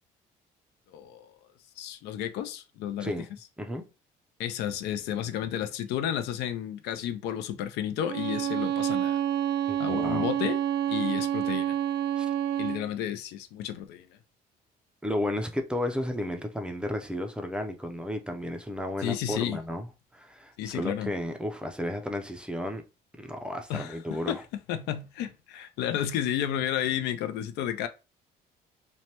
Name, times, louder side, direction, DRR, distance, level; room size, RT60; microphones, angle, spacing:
voice 1, 0.9-1.3 1.8-3.1 4.4-9.2 9.8-10.6 10.9-11.8 12.6-14.1 19.0-19.6 20.6-21.1 23.7-24.4 24.7-27.9, left 10 dB, 85° left, 0.4 m, -32 dB
Bowed string instrument, 8.0-12.9, right 10 dB, 80° right, 0.4 m, -28 dB
voice 2, 9.7-10.3 12.2-12.3 15.0-19.9 20.1-22.8 23.2-24.4, left 1 dB, 5° right, 0.4 m, -33 dB
3.1 x 2.1 x 2.8 m
cardioid pair, 110°, 17 cm